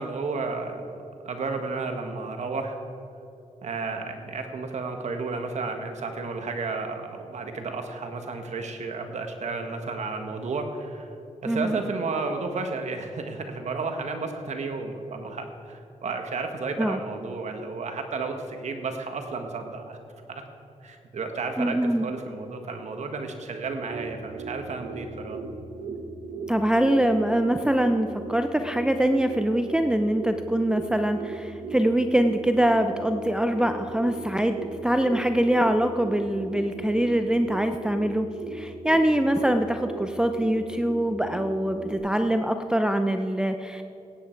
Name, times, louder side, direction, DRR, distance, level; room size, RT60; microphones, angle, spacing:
voice 1, 0.0-2.8 3.6-11.1 11.4-20.0 20.3-20.4 20.8-21.8 22.0-25.4, right 4 dB, 65° right, 5 dB, 1.6 m, -32 dB
voice 2, 11.5-11.8 16.8-17.0 21.6-22.1 26.5-43.8, right 1 dB, 5° right, 6 dB, 0.6 m, -24 dB
sound 1, 23.6-42.0, right 3 dB, 85° right, 1.2 m, -38 dB
16.0 x 10.0 x 4.6 m, 2.8 s
cardioid pair, 75°, 13 cm